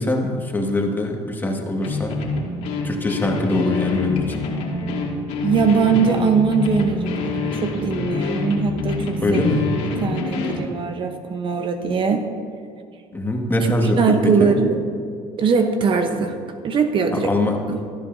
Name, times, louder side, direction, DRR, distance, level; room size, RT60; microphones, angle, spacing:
voice 1, 0.0-2.2 2.8-4.4 9.2-9.6 13.1-14.5 17.3-17.5, left 1 dB, 15° left, 1 dB, 1.8 m, -22 dB
sound 1, 1.8-10.7, left 3 dB, 75° left, 2.3 m, -26 dB
voice 2, 5.4-9.4 9.7-12.2 13.8-14.9 15.4-16.4 16.6-17.9, right 5 dB, 45° right, 6 dB, 0.9 m, -21 dB
18.5 x 10.0 x 2.7 m, 2.4 s
supercardioid pair, 100°, 12 cm